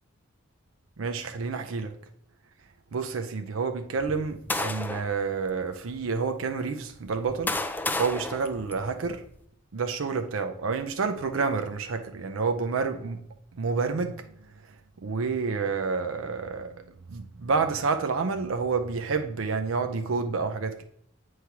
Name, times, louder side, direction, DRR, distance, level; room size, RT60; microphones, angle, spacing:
voice 1, 1.0-1.9 2.9-7.5 8.0-9.2 9.7-13.2 13.5-14.2 15.0-16.8 17.1-20.8, right 4 dB, 80° right, 0.5 m, -29 dB
sound 1, 4.0-5.2 5.9-6.0 6.9-9.3, left 2 dB, 10° left, 0.4 m, -32 dB
8.1 x 3.2 x 5.8 m
head